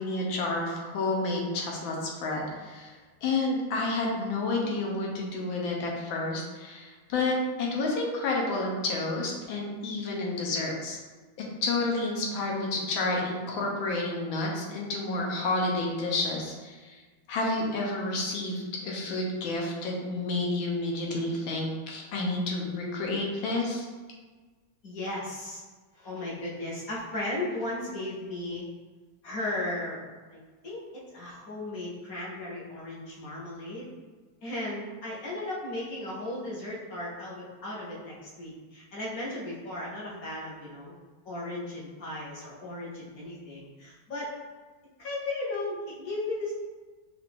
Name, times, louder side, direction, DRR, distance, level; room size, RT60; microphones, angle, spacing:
voice 1, 0.0-2.9 3.2-11.0 11.6-17.0 17.3-23.9, left 2 dB, 85° left, -2 dB, 1.6 m, -30 dB
voice 2, 24.8-25.6 25.9-28.6 29.2-30.0 30.3-33.9 34.4-40.9 41.2-44.3 45.0-46.5, left 2 dB, 55° left, -6 dB, 1.1 m, -36 dB
4.7 x 2.5 x 3.4 m, 1.3 s
omnidirectional pair, 2.1 m